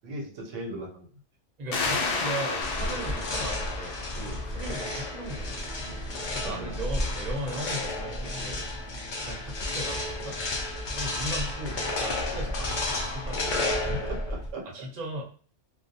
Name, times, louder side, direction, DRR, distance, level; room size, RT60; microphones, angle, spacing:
voice 1, 0.0-1.1 6.4-6.8 13.9-14.7, right 1 dB, 80° right, 0 dB, 1.0 m, -37 dB
voice 2, 1.6-5.7 6.3-8.7 9.2-10.4 10.9-13.6 14.6-15.2, right 1 dB, 40° right, -2 dB, 0.7 m, -37 dB
sound 1, 1.7-5.1, left 3 dB, 75° left, 0.9 m, -32 dB
sound 2, 2.6-14.5, left 2 dB, 50° left, 0.6 m, -32 dB
sound 3, 3.3-14.1, right 1 dB, ahead, 0.3 m, -49 dB
2.3 x 2.2 x 2.6 m, 0.42 s
omnidirectional pair, 1.3 m